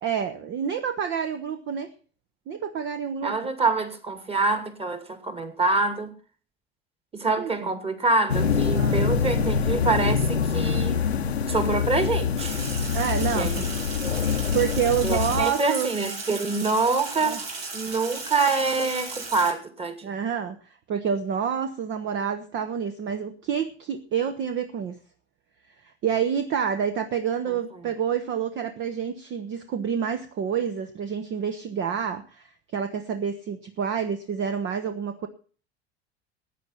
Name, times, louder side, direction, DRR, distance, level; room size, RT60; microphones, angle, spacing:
voice 1, 0.0-1.9 2.5-3.3 7.4-7.7 8.7-9.1 12.9-13.7 14.2-15.9 17.2-17.4 20.0-25.0 26.0-35.3, right 7 dB, 35° right, 1.1 m, -28 dB
voice 2, 3.2-6.1 7.1-11.0 11.5-12.6 13.3-13.7 14.0-14.2 15.0-20.1, right 3 dB, 20° right, 2.5 m, -26 dB
sound 1, 8.3-15.5, left 6 dB, 80° left, 0.9 m, -25 dB
Sink (filling or washing), 12.4-19.5, right 3 dB, 65° right, 3.8 m, -36 dB
15.0 x 9.4 x 5.7 m
figure-of-eight pair, 70°, 32 cm